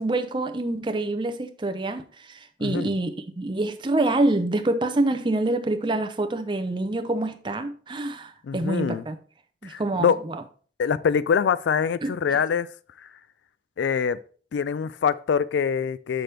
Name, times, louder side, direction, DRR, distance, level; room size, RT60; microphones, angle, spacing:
voice 1, 0.0-9.2 9.6-10.4 12.0-12.4, right 2 dB, 25° right, 0.6 m, -26 dB
voice 2, 8.4-9.0 9.6-10.2 10.8-12.7 13.8-14.2 14.5-16.2, left 6 dB, 75° left, 0.3 m, -24 dB
6.7 x 5.9 x 3.3 m
head